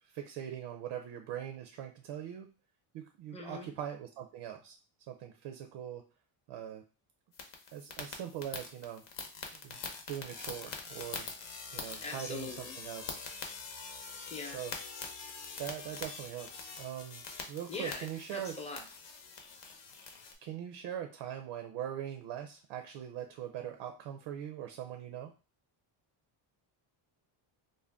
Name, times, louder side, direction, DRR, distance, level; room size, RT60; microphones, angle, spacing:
voice 1, 0.0-2.5 2.9-4.8 5.1-6.0 6.5-6.8 7.7-9.0 9.6-9.8 10.1-11.2 11.7-13.0 14.5-14.7 15.6-18.6 20.4-25.3, right 10 dB, 75° right, 5 dB, 0.6 m, -41 dB
voice 2, 3.3-3.7 12.0-12.7 14.3-14.6 17.7-18.0 18.3-18.8, left 3 dB, 15° left, 1 dB, 0.6 m, -41 dB
sound 1, 7.3-20.3, left 5 dB, 65° left, 0.8 m, -44 dB
2.5 x 2.2 x 3.4 m, 0.34 s
cardioid pair, 105°, 47 cm